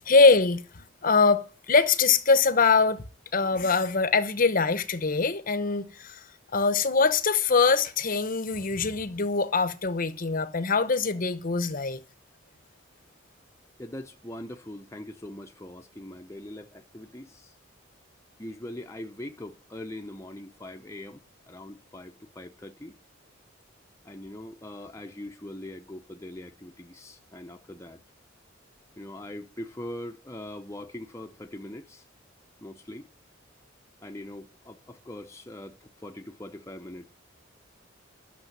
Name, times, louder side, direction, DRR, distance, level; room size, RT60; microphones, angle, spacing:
voice 1, 0.0-3.0 3.3-6.2 6.5-12.0, left 4 dB, 45° left, 0.9 m, -23 dB
voice 2, 13.8-17.5 18.4-21.2 21.5-22.9 24.0-28.0 29.0-32.0 32.6-33.1 34.0-37.1, left 1 dB, 15° left, 0.8 m, -41 dB
12.0 x 6.8 x 9.6 m
head